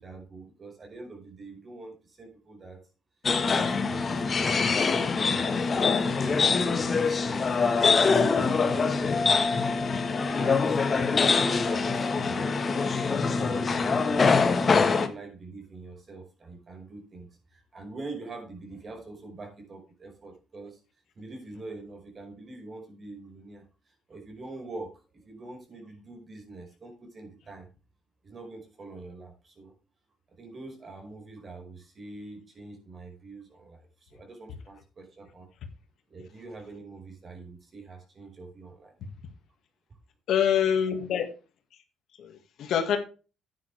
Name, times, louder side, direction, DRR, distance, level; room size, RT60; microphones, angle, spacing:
voice 1, 0.0-2.8 3.4-7.6 8.0-9.7 10.0-12.7 13.2-20.8 21.1-27.7 28.2-29.7 30.3-35.5 36.1-38.9, right 3 dB, 35° right, 5.0 m, -44 dB
sound 1, 3.2-15.1, left 4 dB, 35° left, 1.4 m, -24 dB
voice 2, 40.3-41.3 42.2-43.0, left 8 dB, 70° left, 1.9 m, -25 dB
11.0 x 9.5 x 3.4 m
cardioid pair, 100°, 0 cm